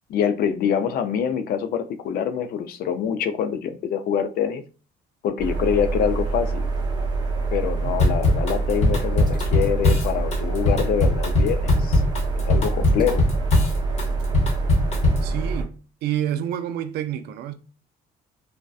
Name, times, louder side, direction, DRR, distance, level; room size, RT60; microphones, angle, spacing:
voice 1, 0.1-4.6 5.2-6.7 7.5-12.0 12.4-13.3, left 8 dB, 65° left, 0.4 m, -25 dB
sound 1, 5.4-15.6, right 3 dB, 25° right, 0.6 m, -26 dB
Drum kit / Drum, 8.0-15.3, left 2 dB, 40° left, 0.9 m, -21 dB
voice 2, 15.2-17.5, right 11 dB, 75° right, 0.4 m, -28 dB
2.6 x 2.1 x 2.3 m
cardioid pair, 110°, 17 cm